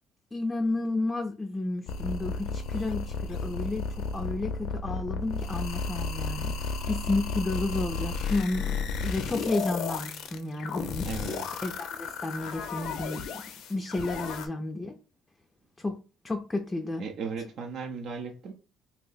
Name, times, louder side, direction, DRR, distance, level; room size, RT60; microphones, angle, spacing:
voice 1, 0.3-6.6 6.9-11.1 11.6-13.4 13.7-15.0 15.8-16.0 16.2-17.0, left 2 dB, 15° left, 0.4 m, -32 dB
sound 1, 1.9-14.5, left 5 dB, 75° left, 0.4 m, -33 dB
voice 2, 11.0-11.5 17.0-18.5, right 5 dB, 60° right, 0.6 m, -36 dB
2.7 x 2.0 x 3.9 m
cardioid pair, 105°, 0 cm